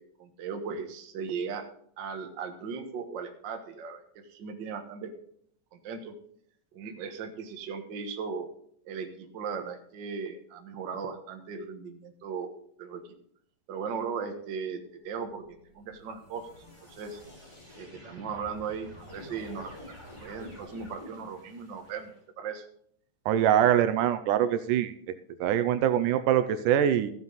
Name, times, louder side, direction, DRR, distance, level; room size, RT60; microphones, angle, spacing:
voice 1, 0.0-1.6 2.0-4.0 4.3-5.1 5.7-6.1 6.7-8.5 8.8-12.5 12.8-13.0 13.7-16.5 16.9-17.2 17.8-19.7 20.2-22.1 22.4-22.6, right 6 dB, 60° right, 4 dB, 1.2 m, -37 dB
sound 1, 15.1-22.2, left 1 dB, 10° left, 3.3 m, -49 dB
voice 2, 23.3-24.9 25.4-27.1, right 10 dB, 80° right, 11 dB, 2.1 m, -23 dB
14.5 x 7.5 x 4.0 m, 0.64 s
omnidirectional pair, 3.8 m